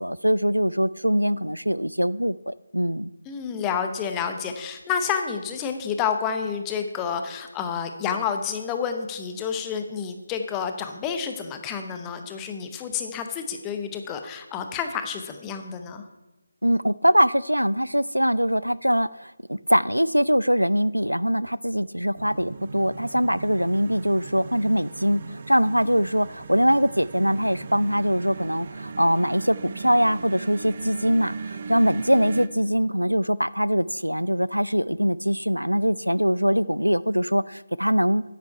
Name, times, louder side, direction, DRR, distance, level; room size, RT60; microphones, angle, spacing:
voice 1, 0.0-3.1 16.6-38.2, equal, 85° right, 19 dB, 0.3 m, -22 dB
voice 2, 3.3-16.0, left 7 dB, 10° left, 7 dB, 0.7 m, -29 dB
sound 1, 22.2-32.5, right 4 dB, 35° right, 0.5 m, -38 dB
9.5 x 9.1 x 4.6 m, 1.1 s
figure-of-eight pair, 155°, 0 cm